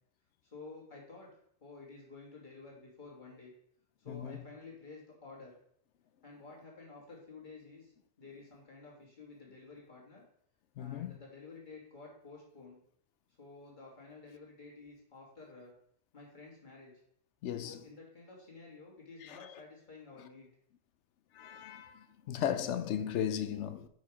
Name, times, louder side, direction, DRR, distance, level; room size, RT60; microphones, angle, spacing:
voice 1, 0.4-1.3 1.6-3.5 4.0-5.6 6.2-10.2 10.8-12.8 13.4-15.7 16.1-16.9 17.6-20.5, left 3 dB, 45° left, 2.2 m, -52 dB
voice 2, 4.1-4.4 10.8-11.1 17.4-17.8 19.3-19.4 21.4-23.9, left 9 dB, 85° left, 0.9 m, -36 dB
6.3 x 4.7 x 4.7 m
omnidirectional pair, 1.2 m